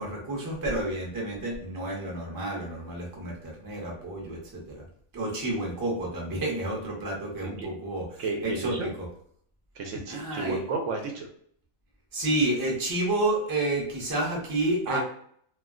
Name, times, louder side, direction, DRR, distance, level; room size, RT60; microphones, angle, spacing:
voice 1, 0.0-4.8 5.1-8.9 10.1-10.6 12.1-15.0, right 2 dB, 20° right, -2 dB, 0.6 m, -30 dB
voice 2, 8.2-8.9 9.8-11.3 14.9-15.0, right 3 dB, 70° right, 2 dB, 0.9 m, -32 dB
2.3 x 2.1 x 3.5 m, 0.63 s
omnidirectional pair, 1.4 m